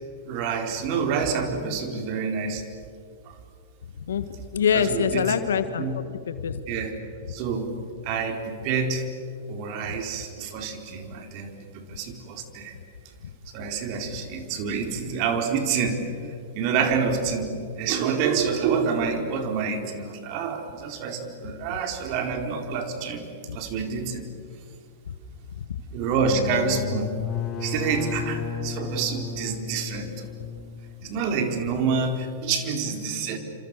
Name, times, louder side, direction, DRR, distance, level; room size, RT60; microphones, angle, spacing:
voice 1, 0.3-2.6 3.3-3.4 4.7-5.3 5.8-6.0 6.7-6.9 7.3-7.8 8.0-9.0 9.5-12.7 13.5-16.0 16.5-24.3 25.9-27.1 27.6-30.3 31.0-33.4, right 5 dB, 50° right, 5 dB, 4.0 m, -27 dB
voice 2, 4.0-6.6 23.5-23.6 25.1-25.2 25.5-25.8, left 7 dB, 80° left, 11 dB, 1.9 m, -26 dB
sound 1, 26.0-31.6, left 6 dB, 25° left, 6.5 m, -33 dB
29.0 x 27.0 x 6.8 m, 2.3 s
hypercardioid pair, 110°, 0 cm